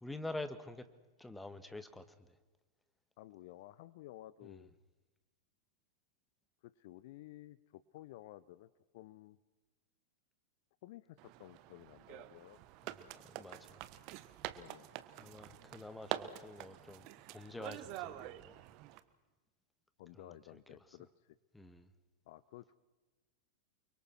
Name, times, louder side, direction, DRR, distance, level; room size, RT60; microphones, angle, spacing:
voice 1, 0.0-0.9 1.2-2.4 4.4-4.6 12.8-13.8 15.2-18.6 20.2-20.8 21.5-21.9, left 2 dB, 5° left, 1.8 m, -48 dB
voice 2, 3.2-4.7 6.6-9.4 10.8-12.6 14.6-14.9 20.0-21.4 22.3-22.8, left 15 dB, 50° left, 0.7 m, -54 dB
sound 1, 11.2-19.0, right 14 dB, 45° right, 1.4 m, -46 dB
29.5 x 24.0 x 6.3 m
figure-of-eight pair, 90°, 0 cm